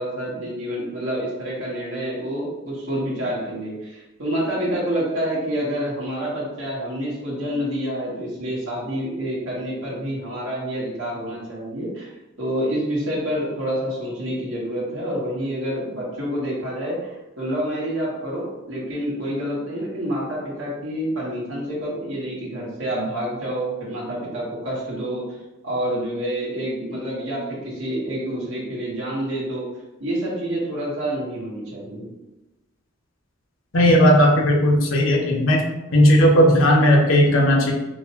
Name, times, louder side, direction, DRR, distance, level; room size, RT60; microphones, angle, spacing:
voice 1, 0.0-12.1 12.4-25.2 25.6-29.7 30.0-32.1, equal, 75° right, -5 dB, 1.0 m, -28 dB
voice 2, 33.7-35.6 35.9-37.7, equal, 75° left, -1 dB, 0.7 m, -16 dB
3.9 x 2.1 x 2.8 m, 1.0 s
head